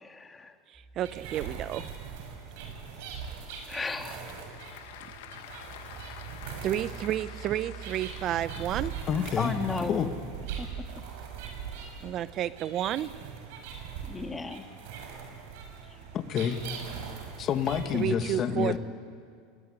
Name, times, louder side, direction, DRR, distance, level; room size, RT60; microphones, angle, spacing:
voice 1, 0.0-0.5 3.7-4.3 9.2-10.1 10.6-10.9 14.0-14.7, left 4 dB, 15° left, 5 dB, 2.4 m, -34 dB
sound 1, 0.7-3.7 4.3-13.7 14.1-14.6 15.0-18.0, right 8 dB, 10° right, 3.2 m, -50 dB
voice 2, 0.7-1.9 6.6-8.9 12.0-13.1 17.9-18.8, right 11 dB, 45° right, 15 dB, 0.8 m, -31 dB
sound 2, 1.0-18.0, right 7 dB, 70° right, 6.2 m, -41 dB
Applause / Crowd, 3.6-9.8, left 11 dB, 75° left, 1.8 m, -48 dB
voice 3, 9.1-9.5 9.9-10.1 16.1-16.6 17.4-18.8, left 8 dB, 40° left, 7 dB, 2.2 m, -28 dB
28.0 x 20.5 x 9.9 m, 2.2 s
hypercardioid pair, 100°, 0 cm